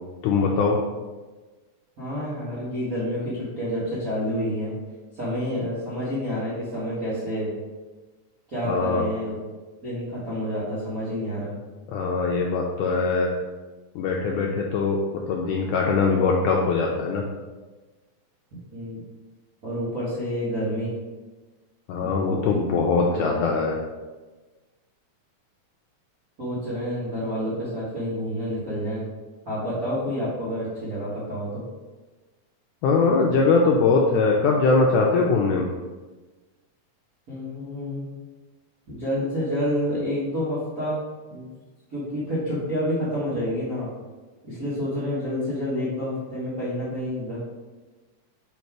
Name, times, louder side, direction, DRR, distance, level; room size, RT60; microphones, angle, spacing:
voice 1, 0.2-0.8 8.7-9.0 11.9-13.3 14.0-15.0 15.3-17.2 21.9-23.8 32.8-35.7, left 4 dB, 85° left, -1 dB, 1.8 m, -21 dB
voice 2, 2.0-4.7 5.1-7.5 8.5-9.3 9.8-11.5 18.5-19.0 19.6-20.9 22.0-22.6 23.1-23.2 26.4-29.0 29.4-31.7 37.3-38.1 38.9-41.0 41.3-41.5 41.9-43.9 44.4-47.4, equal, 55° right, -11 dB, 0.9 m, -29 dB
4.9 x 4.1 x 4.7 m, 1.2 s
omnidirectional pair, 4.1 m